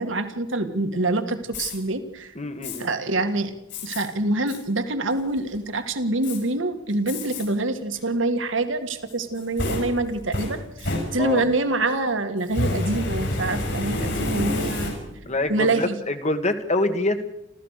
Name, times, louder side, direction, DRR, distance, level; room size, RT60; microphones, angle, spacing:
voice 1, 0.0-2.3 2.8-3.5 3.8-14.9 15.5-16.0, right 2 dB, 75° right, 8 dB, 2.0 m, -25 dB
Fire, 1.5-1.7 2.6-2.8 3.7-4.0 4.5-4.6 5.1-5.6 6.2-6.4 7.1-7.4 7.9-8.0 9.1-11.6 12.4-15.3, left 1 dB, 60° left, 7.9 m, -29 dB
voice 2, 2.4-2.9 11.2-11.5 15.3-17.2, left 2 dB, 35° left, 8 dB, 1.8 m, -25 dB
28.5 x 14.0 x 6.6 m, 0.82 s
head